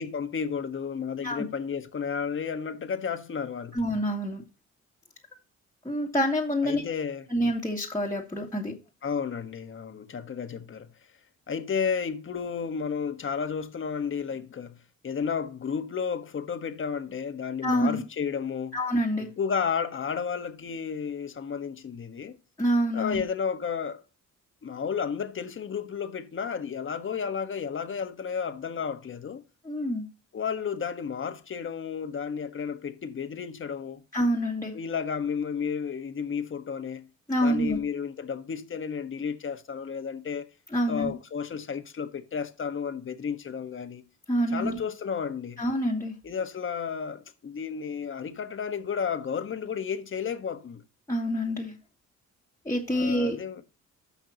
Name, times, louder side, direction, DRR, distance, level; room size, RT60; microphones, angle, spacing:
voice 1, 0.0-3.8 6.6-7.3 9.0-10.9 11.5-18.8 19.4-22.4 22.9-24.0 24.6-29.4 30.3-34.0 34.7-37.1 37.4-40.5 40.9-44.0 44.5-45.6 46.2-50.8 52.9-53.6, left 6 dB, 40° left, 1.4 m, -32 dB
voice 2, 3.7-4.4 5.9-6.8 7.3-8.7 17.6-18.0 18.7-19.3 22.6-23.2 29.7-30.0 34.1-34.8 37.3-37.8 40.7-41.1 44.3-44.8 45.6-46.1 51.1-51.7 52.7-53.4, equal, 10° left, 2.0 m, -27 dB
14.0 x 5.8 x 2.9 m
cardioid pair, 90°, 30 cm